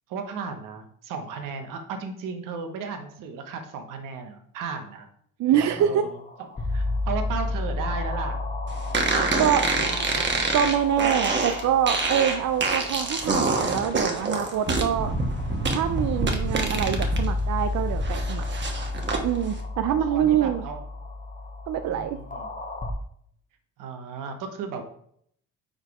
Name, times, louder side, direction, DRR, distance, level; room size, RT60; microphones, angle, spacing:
voice 1, 0.1-5.1 5.8-6.2 6.7-8.4 9.2-10.4 18.6-18.8 19.9-20.8 21.9-22.5 23.8-24.8, right 5 dB, 85° right, 6 dB, 1.1 m, -35 dB
voice 2, 5.4-6.1 9.4-9.6 10.5-15.1 15.7-18.4 19.2-20.6 21.7-22.2, right 9 dB, 60° right, 8 dB, 0.5 m, -25 dB
sound 1, 5.5-22.9, left 2 dB, 25° left, 1.0 m, -33 dB
sound 2, 8.9-17.2 17.6-19.2, right 3 dB, 35° right, 1.3 m, -26 dB
5.1 x 4.1 x 4.9 m, 0.65 s
cardioid pair, 85°, 32 cm